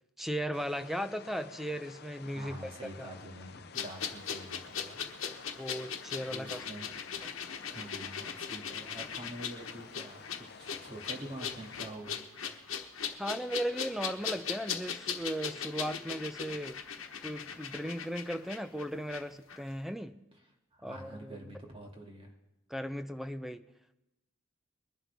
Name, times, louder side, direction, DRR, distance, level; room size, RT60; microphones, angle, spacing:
voice 1, 0.2-2.7 3.0-3.1 5.6-6.6 7.2-7.3 13.2-16.8 17.2-20.2 20.8-21.4 22.7-23.7, equal, ahead, 10 dB, 0.5 m, -37 dB
sound 1, 0.5-11.9, left 5 dB, 50° left, 0.6 m, -52 dB
voice 2, 2.3-5.1 6.3-7.0 7.7-12.2 20.7-22.3, right 1 dB, 25° right, 0 dB, 2.3 m, -46 dB
sound 2, 3.7-19.2 19.5-19.6, left 7 dB, 70° left, 1.2 m, -39 dB
21.5 x 11.0 x 3.5 m, 0.96 s
head